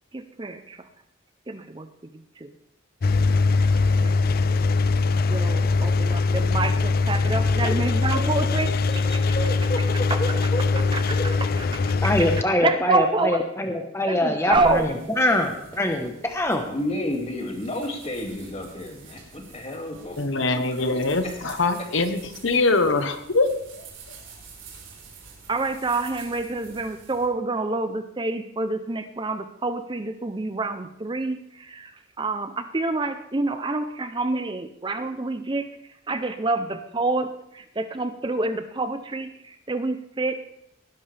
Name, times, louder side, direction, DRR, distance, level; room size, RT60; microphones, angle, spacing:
voice 1, 0.1-0.9 1.5-1.9 2.4-2.5 4.0-4.6 5.3-8.7 10.1-10.2 10.9-11.0 11.6-11.7 12.4-13.4 14.1-14.9 25.5-35.7 36.1-40.3, right 3 dB, 25° right, 9 dB, 0.6 m, -27 dB
Engine, 3.0-12.4, left 3 dB, 45° left, 0.4 m, -22 dB
voice 2, 7.6-10.9 11.2-11.3 16.6-20.8 21.2-21.4, left 1 dB, 30° left, 2 dB, 2.3 m, -32 dB
voice 3, 12.0-14.9 15.2-16.6, left 1 dB, 15° left, 4 dB, 1.1 m, -23 dB
sound 1, 14.5-27.3, right 3 dB, 75° right, 4.4 m, -46 dB
voice 4, 20.2-23.8, left 3 dB, 70° left, 8 dB, 1.1 m, -23 dB
18.5 x 11.0 x 3.4 m, 0.79 s
head